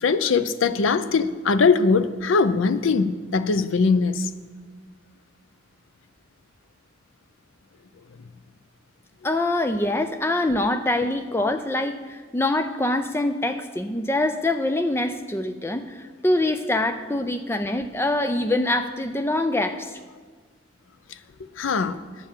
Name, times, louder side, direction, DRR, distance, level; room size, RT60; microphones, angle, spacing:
voice 1, 0.0-4.3 21.1-21.2 21.6-22.0, left 4 dB, 85° left, 0.5 m, -21 dB
voice 2, 9.2-19.9, left 1 dB, 10° left, 0.4 m, -24 dB
10.0 x 5.7 x 7.3 m
head